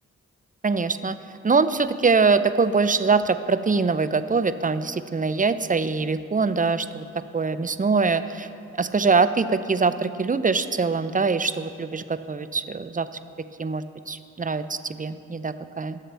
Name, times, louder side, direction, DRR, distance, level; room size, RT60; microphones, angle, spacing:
voice 1, 0.6-1.2 1.4-7.0 7.3-8.5 8.8-13.1 13.6-16.0, right 4 dB, 25° right, 13 dB, 0.6 m, -23 dB
22.5 x 7.5 x 3.4 m, 2.5 s
supercardioid pair, 45°, 32 cm